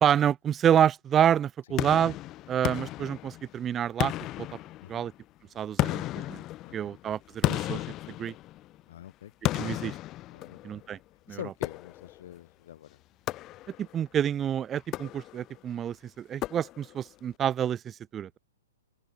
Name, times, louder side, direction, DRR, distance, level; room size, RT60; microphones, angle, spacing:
voice 1, 0.0-2.2 2.5-4.1 4.4-4.5 4.9-5.1 5.5-6.4 6.7-8.3 9.5-10.0 10.6-11.0 11.3-11.4 13.8-18.4, right 9 dB, 20° right, 2.4 m, -28 dB
sound 1, 1.8-3.6 4.0-5.2 5.8-8.8 9.4-10.9 11.6-12.3 13.3-14.0 14.8-15.6 16.4-17.1, left 16 dB, 30° left, 6.0 m, -33 dB
voice 2, 8.9-9.3 10.3-10.9 11.3-13.0, left 12 dB, 60° left, 5.0 m, -45 dB
open air
hypercardioid pair, 130°, 0 cm